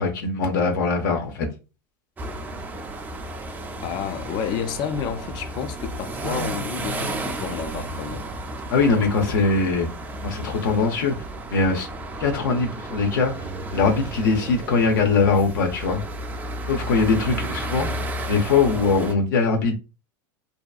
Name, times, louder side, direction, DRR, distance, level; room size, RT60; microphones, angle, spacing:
voice 1, 0.0-1.5 8.7-9.9 10.2-11.2 11.5-11.9 12.2-13.3 13.7-16.0 16.7-17.9 18.3-19.7, left 4 dB, 80° left, 0.7 m, -21 dB
sound 1, 2.2-19.1, right 2 dB, 15° right, 0.4 m, -33 dB
voice 2, 3.8-8.3 9.0-9.3, left 8 dB, 45° left, 0.4 m, -30 dB
2.8 x 2.2 x 2.3 m
hypercardioid pair, 110°, 10 cm